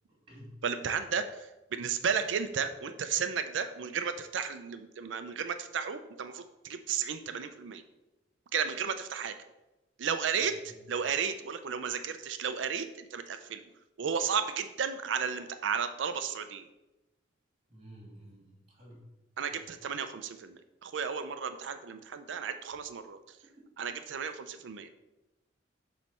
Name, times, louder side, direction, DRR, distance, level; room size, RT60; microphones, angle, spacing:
voice 1, 0.6-7.8 8.5-9.3 10.0-10.6 10.9-13.6 14.0-16.7 19.4-23.4 23.8-24.9, right 6 dB, 85° right, 9 dB, 0.4 m, -33 dB
voice 2, 17.7-19.0 19.5-19.7 23.5-23.6, right 1 dB, 30° right, -4 dB, 2.3 m, -52 dB
7.2 x 3.2 x 5.5 m, 1.0 s
head